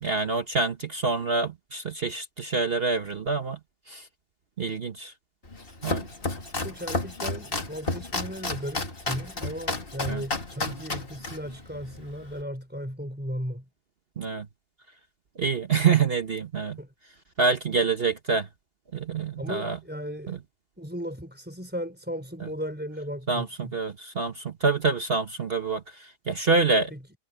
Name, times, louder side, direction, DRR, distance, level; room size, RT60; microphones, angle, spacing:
voice 1, 0.0-3.6 3.9-4.1 4.6-5.1 5.8-6.0 10.1-10.2 14.2-14.5 15.4-16.8 17.4-18.5 18.9-19.8 20.3-20.4 22.4-22.5 23.3-26.9, right 4 dB, 40° right, 1.1 m, -26 dB
Domestic sounds home sounds, 5.4-12.4, left 2 dB, 35° left, 2.2 m, -32 dB
voice 2, 6.6-13.7 16.8-16.9 19.4-20.4 20.8-23.8 26.9-27.0, equal, 5° right, 5.1 m, -36 dB
omnidirectional pair, 1.8 m